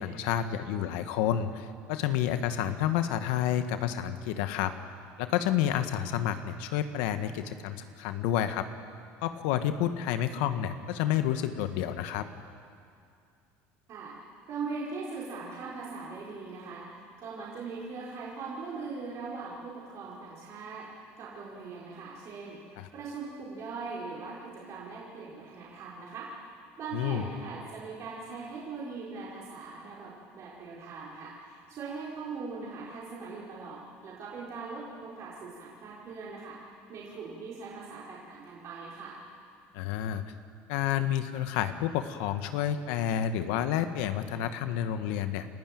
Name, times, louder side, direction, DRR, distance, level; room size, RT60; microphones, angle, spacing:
voice 1, 0.0-4.7 5.2-8.6 9.2-12.3 22.8-22.9 26.9-27.2 39.7-40.2 40.7-45.5, left 10 dB, 80° left, 9 dB, 1.3 m, -29 dB
voice 2, 14.5-20.9 21.2-26.3 26.8-36.6 36.9-39.2, right 4 dB, 50° right, -6 dB, 4.9 m, -40 dB
28.5 x 13.0 x 9.3 m, 2.3 s
supercardioid pair, 105°, 6 cm